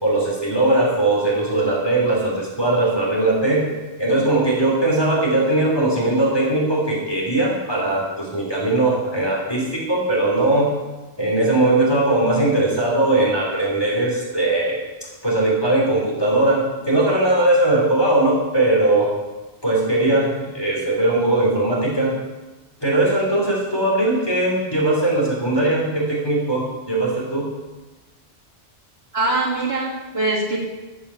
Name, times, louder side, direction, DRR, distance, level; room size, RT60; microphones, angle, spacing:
voice 1, 0.0-3.7 4.0-10.7 11.2-19.1 19.6-22.1 22.8-27.5, right 2 dB, 20° left, -4 dB, 4.1 m, -19 dB
voice 2, 29.1-30.6, right 2 dB, 60° right, -4 dB, 3.0 m, -22 dB
15.5 x 7.1 x 7.3 m, 1.2 s
omnidirectional pair, 1.1 m